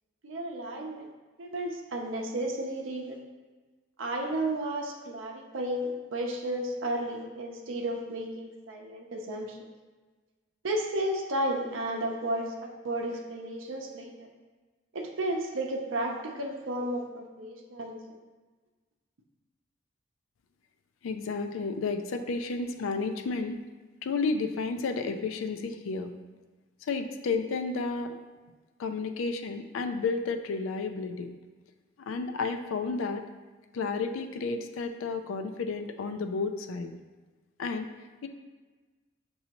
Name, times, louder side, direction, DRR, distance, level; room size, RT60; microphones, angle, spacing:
voice 1, 0.2-1.1 1.4-3.2 4.0-9.6 10.6-12.5 12.8-14.3 14.9-18.0, right 1 dB, 80° right, 1 dB, 0.6 m, -33 dB
voice 2, 21.0-23.6 24.0-26.1 26.8-28.2 28.8-31.3 32.1-33.2 33.7-36.9 37.6-37.9 38.2-38.3, left 4 dB, 90° left, 6 dB, 0.4 m, -31 dB
6.7 x 2.7 x 2.9 m, 1.3 s
head